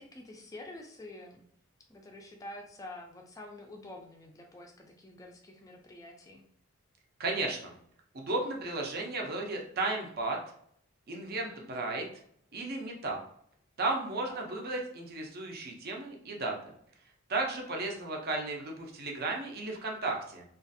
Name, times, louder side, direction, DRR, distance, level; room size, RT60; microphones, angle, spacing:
voice 1, 0.0-1.4 1.9-6.5 11.3-11.7 14.3-14.5, left 1 dB, 15° left, 1 dB, 0.3 m, -48 dB
voice 2, 7.2-7.7 8.1-10.4 11.1-12.1 12.5-13.2 13.8-16.5 17.3-20.4, right 2 dB, 45° right, 1 dB, 0.5 m, -34 dB
2.4 x 2.4 x 2.6 m, 0.66 s
head